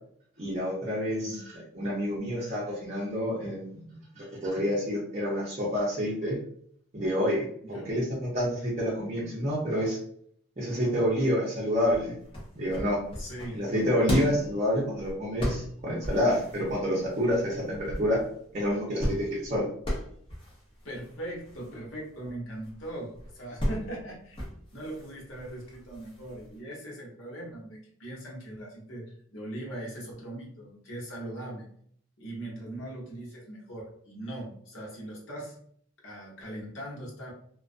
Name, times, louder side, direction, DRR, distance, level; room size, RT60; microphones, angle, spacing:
voice 1, 0.4-1.4 1.7-3.8 4.1-6.4 6.9-10.0 10.6-12.1 12.6-13.0 13.5-18.2 18.5-19.6, equal, 35° right, -7 dB, 0.6 m, -28 dB
voice 2, 7.6-7.9 13.2-13.6 20.8-24.5 24.7-29.0 29.3-31.6 32.2-35.6 36.0-37.3, right 1 dB, 65° left, -3 dB, 0.9 m, -40 dB
sound 1, 11.9-26.6, equal, 25° left, 0.7 m, -37 dB
2.4 x 2.2 x 2.4 m, 0.63 s
head